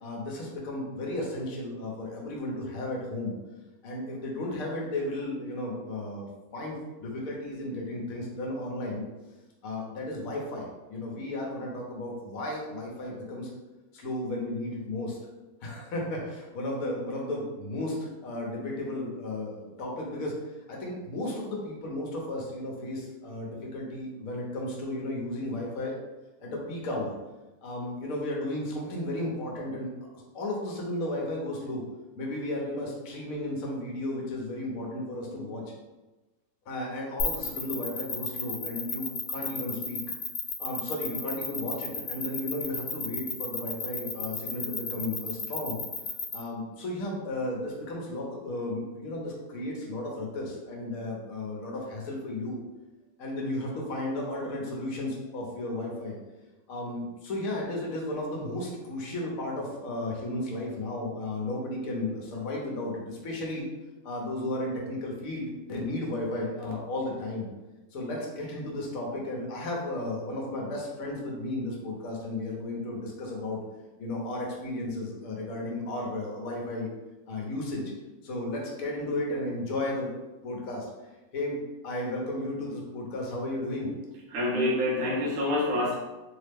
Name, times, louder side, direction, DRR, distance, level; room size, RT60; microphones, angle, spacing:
voice 1, 0.0-3.3 3.8-9.0 9.6-13.5 13.9-15.2 15.6-20.3 20.7-26.0 26.4-27.1 27.6-31.8 32.2-35.6 36.7-40.0 40.6-45.8 46.3-52.6 53.2-56.2 56.7-63.6 64.0-67.5 67.9-73.6 74.0-76.9 77.3-77.9 78.2-80.1 80.4-80.9 81.3-81.6 81.8-83.9, left 1 dB, 70° left, -1 dB, 1.1 m, -34 dB
sound 1, 37.2-46.3, left 4 dB, 85° left, 0.4 m, -32 dB
voice 2, 84.3-86.0, left 1 dB, 65° right, -3 dB, 1.0 m, -26 dB
3.1 x 2.0 x 3.3 m, 1.1 s
omnidirectional pair, 1.6 m